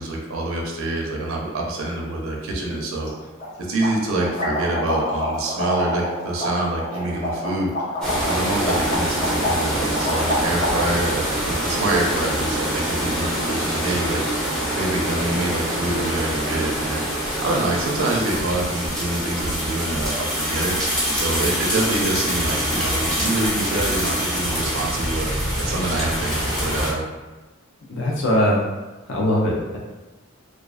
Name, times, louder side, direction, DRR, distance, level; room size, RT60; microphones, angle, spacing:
voice 1, 0.0-3.1 3.6-7.7 8.2-14.2 14.8-17.0 17.4-20.8 21.1-25.3 25.6-27.1, right 2 dB, 75° right, -1 dB, 0.5 m, -26 dB
sound 1, 3.0-3.1 3.4-3.5 3.8-11.1, left 1 dB, 40° left, 0.9 m, -26 dB
sound 2, 8.0-26.9, equal, 5° left, 0.6 m, -25 dB
voice 2, 27.9-28.6 29.1-29.8, left 1 dB, 65° left, -3 dB, 0.5 m, -20 dB
2.3 x 2.3 x 2.4 m, 1.2 s
head